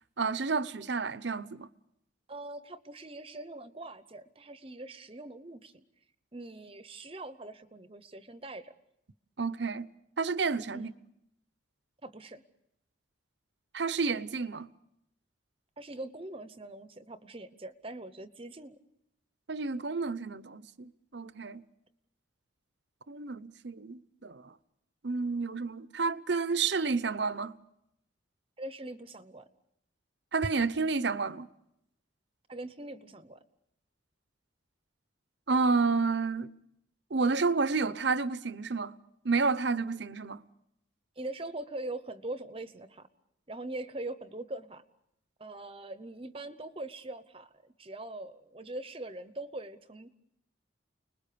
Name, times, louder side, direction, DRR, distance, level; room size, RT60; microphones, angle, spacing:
voice 1, 0.2-1.7 9.4-9.9 10.2-10.9 13.7-14.7 19.5-21.6 23.1-24.5 25.0-27.5 30.3-31.5 35.5-36.5 37.1-38.9 39.2-40.4, right 4 dB, 60° right, 0.8 m, -30 dB
voice 2, 2.3-5.8 6.3-8.7 10.7-10.9 12.0-12.4 15.8-18.8 28.6-29.5 32.5-33.4 41.2-43.1 43.5-44.8 45.4-50.1, right 2 dB, 30° right, 0.9 m, -42 dB
30.0 x 20.5 x 6.9 m
head